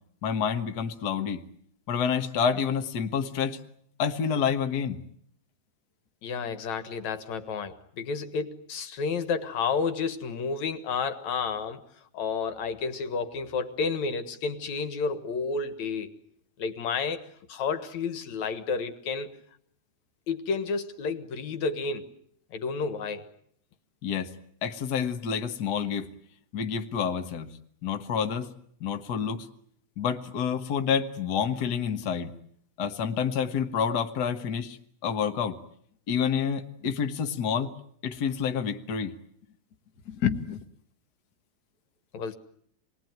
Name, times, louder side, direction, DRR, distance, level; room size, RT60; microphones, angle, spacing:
voice 1, 0.2-1.4 1.9-3.6 4.0-5.0 24.0-24.3 24.6-26.1 26.5-27.5 27.8-28.5 28.8-29.5 30.0-32.3 32.8-34.8 35.0-35.6 36.1-37.7 38.0-39.1 40.1-40.6, left 7 dB, 75° left, 6 dB, 0.9 m, -28 dB
voice 2, 6.2-11.8 12.1-16.1 16.6-19.4 20.3-22.1 22.5-23.2 42.1-42.3, left 5 dB, 60° left, 9 dB, 2.7 m, -31 dB
27.5 x 20.5 x 9.4 m, 0.67 s
omnidirectional pair, 4.2 m